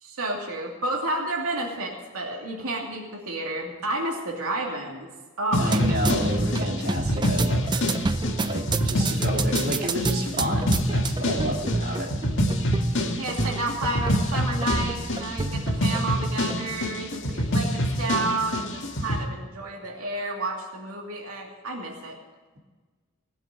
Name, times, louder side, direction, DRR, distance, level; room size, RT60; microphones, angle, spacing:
voice 1, 0.0-5.1 5.4-5.7 13.2-22.2, right 2 dB, 90° right, 0 dB, 2.7 m, -31 dB
sound 1, 5.5-19.2, left 1 dB, 60° left, 2.1 m, -27 dB
voice 2, 5.5-7.9 8.4-12.1, equal, 50° right, -2 dB, 3.1 m, -30 dB
sound 2, 5.7-16.6, right 3 dB, 20° right, 0.4 m, -29 dB
18.0 x 7.8 x 8.9 m, 1.4 s
head